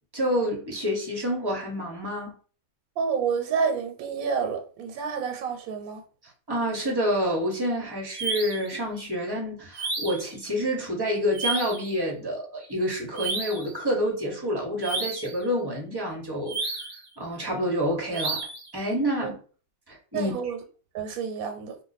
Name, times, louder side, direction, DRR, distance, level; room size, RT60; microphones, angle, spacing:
voice 1, 0.1-2.4 6.5-16.8 17.2-18.4 18.7-19.3 19.9-20.3, equal, 25° right, 0.6 m, -28 dB
voice 2, 3.0-6.0 19.2-19.3 20.1-20.6 20.9-21.8, right 6 dB, 90° right, 1.1 m, -29 dB
sound 1, 8.1-8.7 9.7-10.3 11.3-11.9 13.2-13.7 14.8-15.4 16.5-17.0 18.1-18.7, right 3 dB, 55° right, 0.8 m, -31 dB
2.5 x 2.2 x 3.9 m
omnidirectional pair, 1.5 m